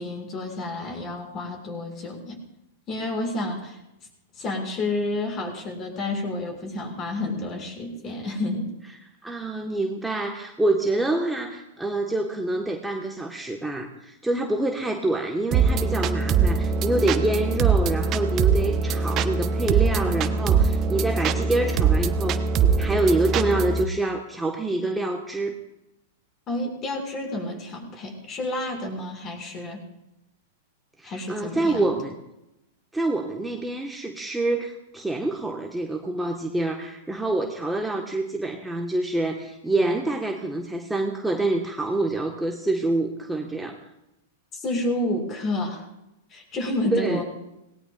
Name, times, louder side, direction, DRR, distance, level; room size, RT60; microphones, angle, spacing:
voice 1, 0.0-2.4 2.9-3.8 4.4-8.7 26.5-29.8 31.0-32.0 44.5-45.8 46.3-47.2, left 2 dB, 30° left, 2 dB, 6.3 m, -30 dB
voice 2, 9.2-22.5 22.8-25.6 31.0-32.1 32.9-43.8 46.9-47.2, right 2 dB, 5° right, 2 dB, 1.5 m, -26 dB
sound 1, 15.5-23.8, right 5 dB, 35° right, 1.1 m, -22 dB
27.0 x 19.5 x 2.6 m, 0.89 s
figure-of-eight pair, 95°, 0 cm